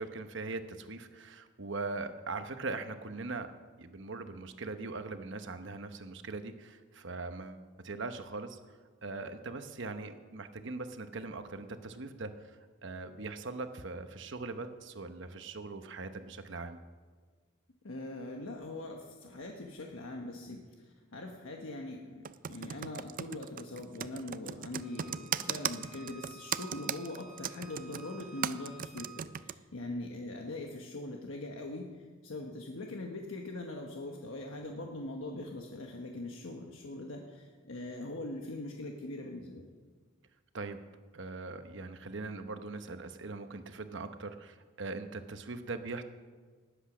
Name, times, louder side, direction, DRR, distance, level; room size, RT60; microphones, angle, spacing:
voice 1, 0.0-3.5 3.8-8.6 9.0-16.8 40.5-40.8 41.1-46.0, right 3 dB, 65° right, 8 dB, 1.0 m, -41 dB
voice 2, 17.8-39.7, left 2 dB, 85° left, 1 dB, 1.2 m, -42 dB
Computer keyboard, 22.2-29.5, right 9 dB, 45° right, 0.4 m, -37 dB
Bowed string instrument, 24.8-29.2, right 4 dB, ahead, 3.4 m, -53 dB
18.5 x 8.1 x 6.2 m, 1.5 s
head